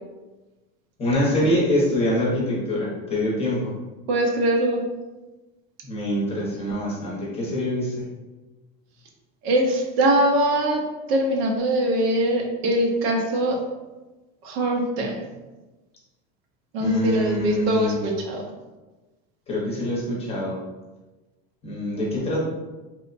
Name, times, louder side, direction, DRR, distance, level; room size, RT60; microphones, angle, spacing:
voice 1, 1.0-3.7 5.8-7.9 16.8-18.0 19.5-20.6 21.6-22.4, left 1 dB, 20° left, -5 dB, 0.7 m, -24 dB
voice 2, 4.1-4.8 9.4-10.8 11.1-13.6 14.4-15.3 16.7-18.4, right 1 dB, 90° right, 1 dB, 0.7 m, -22 dB
2.9 x 2.1 x 2.4 m, 1.2 s
cardioid pair, 150°, 30 cm